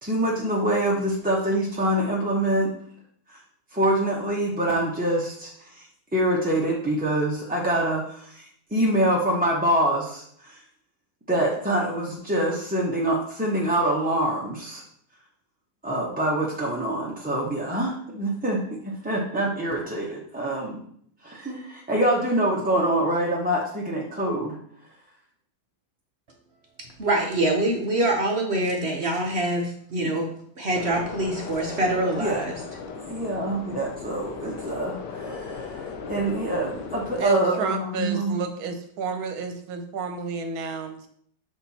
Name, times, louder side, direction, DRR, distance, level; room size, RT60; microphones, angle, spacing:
voice 1, 0.0-2.7 3.3-3.4 3.7-5.8 6.1-10.6 11.3-14.8 15.8-20.8 21.2-24.6 30.0-30.1 32.2-32.4 33.1-38.4, right 1 dB, 10° right, -4 dB, 0.6 m, -25 dB
voice 2, 27.0-30.3 30.6-32.6, right 1 dB, 50° right, 0 dB, 0.9 m, -25 dB
sound 1, 30.7-37.2, left 5 dB, 90° left, 1.5 m, -37 dB
voice 3, 37.2-41.1, right 5 dB, 65° right, 7 dB, 1.2 m, -31 dB
6.8 x 4.3 x 4.1 m, 0.65 s
omnidirectional pair, 1.8 m